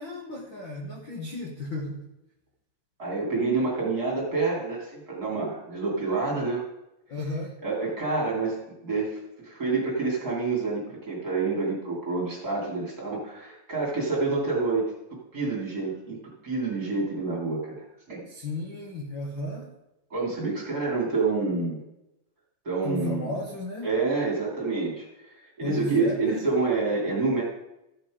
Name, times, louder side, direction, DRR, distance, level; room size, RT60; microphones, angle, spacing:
voice 1, 0.0-2.1 7.1-7.6 18.3-19.7 22.8-23.9 25.6-26.5, left 2 dB, 60° left, 0 dB, 1.3 m, -34 dB
voice 2, 3.0-6.6 7.6-18.3 20.1-21.8 22.6-23.3 23.8-27.4, right 3 dB, 30° right, -3 dB, 2.7 m, -28 dB
14.0 x 6.6 x 4.9 m, 0.90 s
omnidirectional pair, 4.1 m